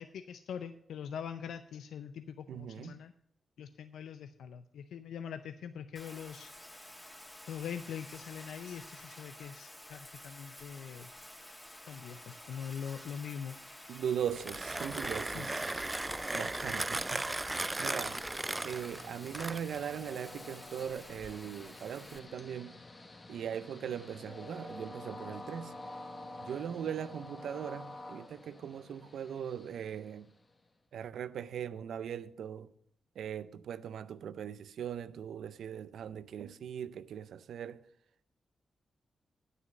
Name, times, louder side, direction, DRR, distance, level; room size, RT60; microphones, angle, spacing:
voice 1, 0.0-3.1 3.6-6.5 7.5-11.1 11.9-13.6 15.3-15.5 15.7-16.0, left 8 dB, 85° left, 0.5 m, -43 dB
voice 2, 2.5-3.0 13.9-18.2 18.6-22.8 23.3-25.8 26.4-30.3 30.9-32.7 33.2-37.8, right 8 dB, 85° right, 0.5 m, -40 dB
Bathtub (filling or washing), 5.9-22.2, left 1 dB, 15° left, 2.3 m, -51 dB
Train, 13.9-30.7, left 2 dB, 35° left, 1.3 m, -50 dB
Mechanisms, 14.3-19.9, right 2 dB, 20° right, 0.3 m, -36 dB
9.7 x 6.1 x 7.7 m
cardioid pair, 60°, 0 cm